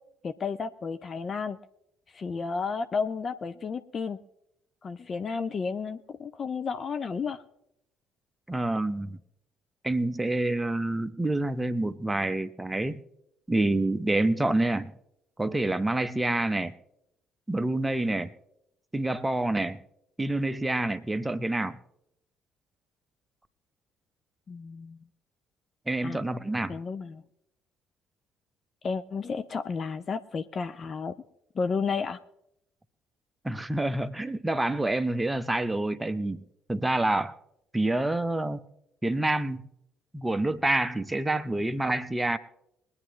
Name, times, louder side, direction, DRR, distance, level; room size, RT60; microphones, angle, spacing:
voice 1, 0.2-1.6 2.1-4.2 4.8-7.4 24.5-25.0 26.0-26.2 26.7-27.2 28.8-31.1 31.5-32.2, left 5 dB, 40° left, 10 dB, 0.5 m, -32 dB
voice 2, 8.5-9.2 9.8-13.0 13.5-14.9 15.4-16.7 17.5-18.3 18.9-19.8 20.2-21.8 25.9-26.8 33.4-36.4 36.7-37.3 37.7-38.6 39.0-39.7 40.1-42.4, right 2 dB, 10° right, 11 dB, 0.9 m, -27 dB
22.5 x 9.7 x 3.1 m, 0.81 s
figure-of-eight pair, 50°, 0 cm